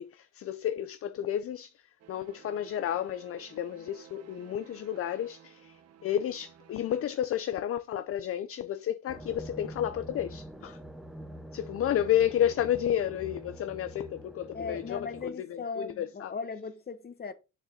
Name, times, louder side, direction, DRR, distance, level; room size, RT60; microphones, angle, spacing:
voice 1, 0.0-1.7 2.1-10.8 11.5-16.3, left 10 dB, 50° left, 0.5 m, -31 dB
sound 1, 2.0-7.0, right 9 dB, 55° right, 0.9 m, -56 dB
sound 2, 9.1-15.3, equal, ahead, 1.1 m, -45 dB
voice 2, 14.5-17.3, left 4 dB, 30° left, 1.0 m, -38 dB
7.2 x 6.9 x 2.7 m
cardioid pair, 90°, 30 cm